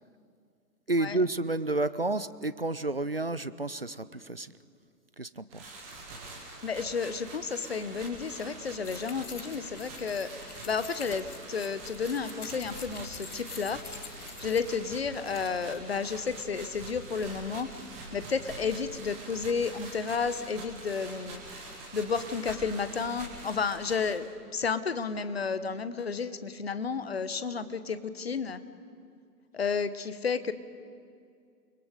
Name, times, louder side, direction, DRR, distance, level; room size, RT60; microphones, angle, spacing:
voice 1, 0.9-4.5 5.2-5.8, right 2 dB, 40° right, 15 dB, 0.4 m, -31 dB
sound 1, 5.5-24.2, right 2 dB, 5° right, 0.9 m, -45 dB
voice 2, 6.6-13.8 14.4-17.7 18.1-21.4 21.9-24.3 24.5-28.6 29.5-30.5, left 5 dB, 40° left, 13 dB, 0.9 m, -32 dB
sound 2, 8.8-16.4, left 6 dB, 60° left, 1.4 m, -48 dB
29.5 x 22.0 x 5.0 m, 2.3 s
figure-of-eight pair, 150°, 50 cm